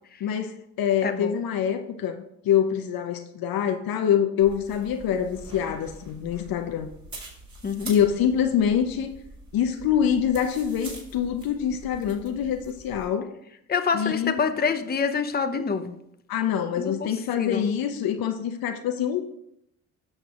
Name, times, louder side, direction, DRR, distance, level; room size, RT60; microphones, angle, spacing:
voice 1, 0.2-6.9 7.9-9.1 9.5-13.3 13.9-14.4 16.3-19.2, left 9 dB, 55° left, 0.8 m, -25 dB
voice 2, 1.0-1.4 7.6-7.9 13.7-15.9 16.8-17.1 17.3-17.7, left 5 dB, 20° left, 0.8 m, -26 dB
sound 1, 4.4-13.1, right 2 dB, 40° right, 3.5 m, -44 dB
14.0 x 6.5 x 2.5 m
hypercardioid pair, 60°, 42 cm